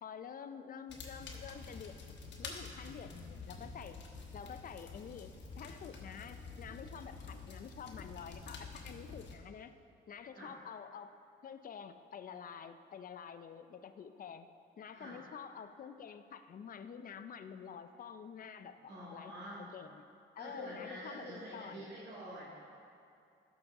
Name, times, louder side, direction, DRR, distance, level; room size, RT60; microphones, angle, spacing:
voice 1, 0.0-2.0 2.4-4.0 4.3-9.7 10.1-11.2 11.4-14.5 14.8-19.3 19.6-20.1 20.4-21.9, left 7 dB, 45° left, 10 dB, 0.4 m, -48 dB
sound 1, 0.9-9.4, left 4 dB, 65° left, 1.2 m, -48 dB
voice 2, 18.9-19.7 20.4-22.6, equal, 60° right, -8 dB, 2.1 m, -47 dB
12.0 x 6.2 x 3.6 m, 2.5 s
cardioid pair, 90°, 20 cm